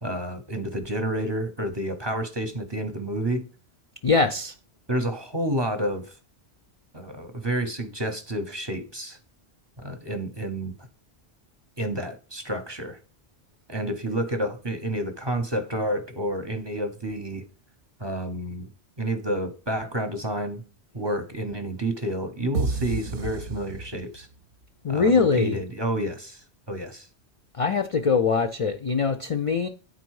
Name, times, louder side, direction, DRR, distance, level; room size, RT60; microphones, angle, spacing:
voice 1, 0.0-3.4 4.9-6.1 6.9-9.2 9.8-10.7 11.8-13.0 13.7-17.4 18.0-18.7 19.0-20.6 20.9-24.3 24.9-27.1, right 1 dB, 25° right, 0.7 m, -29 dB
voice 2, 4.0-4.5 24.8-25.6 27.5-29.7, left 4 dB, 50° left, 0.4 m, -22 dB
sound 1, 22.5-24.4, right 4 dB, 60° right, 0.7 m, -30 dB
9.4 x 4.0 x 4.7 m
omnidirectional pair, 1.1 m